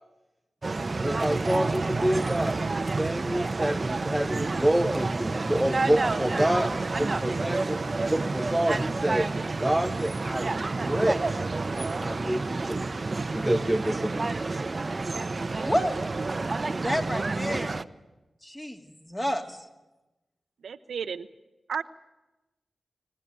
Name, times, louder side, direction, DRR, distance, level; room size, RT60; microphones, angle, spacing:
sound 1, 0.6-17.8, right 3 dB, 45° right, 0.7 m, -29 dB
voice 1, 1.0-2.6 3.0-6.7 7.0-7.8 8.1-9.3 9.6-11.4 12.0-12.8 13.3-14.6, right 1 dB, 10° right, 7 dB, 1.0 m, -27 dB
voice 2, 15.6-16.0 16.8-17.8 18.4-18.8 19.1-19.7, equal, 15° left, 4 dB, 2.9 m, -29 dB
voice 3, 20.6-21.3 21.7-21.8, right 6 dB, 85° right, 12 dB, 0.7 m, -32 dB
24.5 x 15.0 x 9.3 m, 1.0 s
cardioid pair, 50°, 0 cm